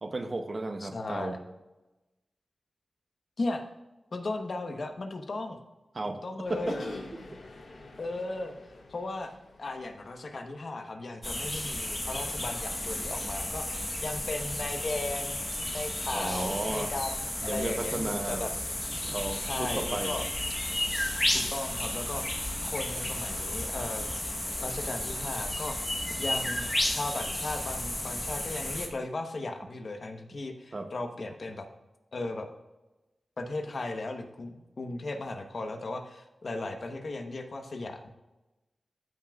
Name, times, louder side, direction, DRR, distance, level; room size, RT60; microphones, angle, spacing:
voice 1, 0.0-1.4 5.9-6.2 6.5-6.8 16.1-16.9 17.4-18.5 19.0-20.2 20.7-20.9 30.7-30.9, right 2 dB, 45° right, 7 dB, 0.8 m, -34 dB
voice 2, 0.8-1.4 3.4-3.6 4.1-5.6 6.0-6.7 8.0-8.5 8.9-9.3 9.6-15.4 15.7-18.5 19.4-20.2 21.3-22.3 22.6-24.1 24.6-25.8 26.2-31.7 32.1-32.5 33.4-38.1, left 2 dB, 60° left, 4 dB, 1.0 m, -36 dB
sound 1, 6.5-10.2, left 2 dB, 90° left, 1.7 m, -44 dB
sound 2, 11.2-28.9, left 1 dB, 15° left, 1.1 m, -33 dB
13.5 x 5.9 x 2.4 m, 1.0 s
wide cardioid pair, 90°, 0 cm